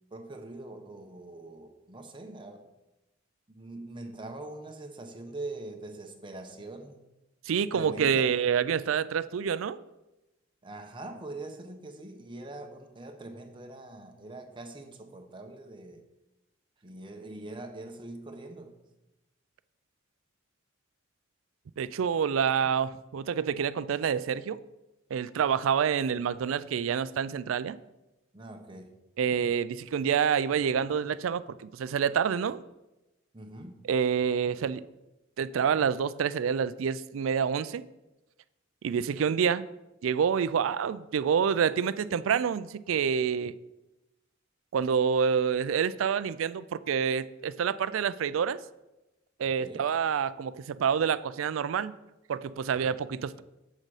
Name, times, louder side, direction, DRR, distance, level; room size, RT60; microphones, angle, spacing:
voice 1, 0.1-2.7 3.5-7.0 7.7-8.4 10.6-16.0 16.8-18.8 28.3-29.0 33.3-33.9 49.6-49.9, right 2 dB, 25° right, 4 dB, 0.9 m, -43 dB
voice 2, 7.5-9.8 21.8-24.6 25.1-27.8 29.2-32.6 33.9-34.8 35.4-37.8 38.8-39.7 40.0-43.5 44.7-48.6 49.4-51.9 52.3-53.4, right 7 dB, 90° right, 16 dB, 0.4 m, -27 dB
7.3 x 6.5 x 4.9 m, 0.98 s
head